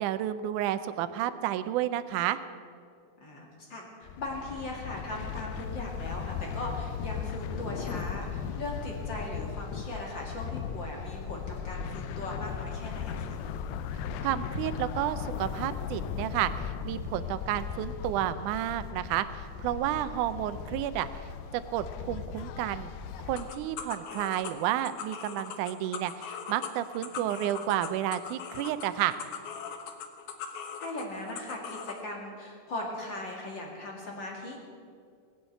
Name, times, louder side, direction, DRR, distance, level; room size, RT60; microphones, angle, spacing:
voice 1, 0.0-2.4 14.2-21.1 21.5-22.9 23.2-29.2, right 12 dB, 80° right, 12 dB, 1.8 m, -31 dB
voice 2, 3.2-13.4 20.0-20.1 27.1-27.5 30.8-34.6, left 1 dB, 35° left, -1 dB, 2.4 m, -39 dB
sound 1, 4.0-23.5, left 7 dB, 85° left, 2.6 m, -37 dB
sound 2, 23.3-32.0, left 7 dB, 65° left, 2.2 m, -41 dB
19.5 x 8.1 x 8.3 m, 2.3 s
omnidirectional pair, 4.2 m